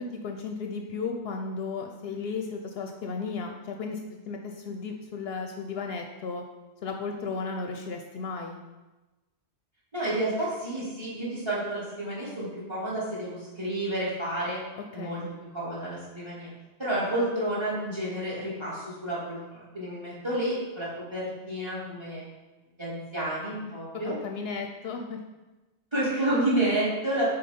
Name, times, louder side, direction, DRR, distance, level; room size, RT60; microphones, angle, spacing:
voice 1, 0.0-6.4 6.8-8.6 15.0-15.3 24.0-25.2, left 4 dB, 70° left, 3 dB, 0.7 m, -34 dB
voice 2, 9.9-14.6 14.9-15.2 15.5-16.5 16.8-22.3 22.8-24.2 25.9-27.2, right 1 dB, 25° right, -7 dB, 2.3 m, -30 dB
6.4 x 4.1 x 4.3 m, 1.1 s
omnidirectional pair, 1.1 m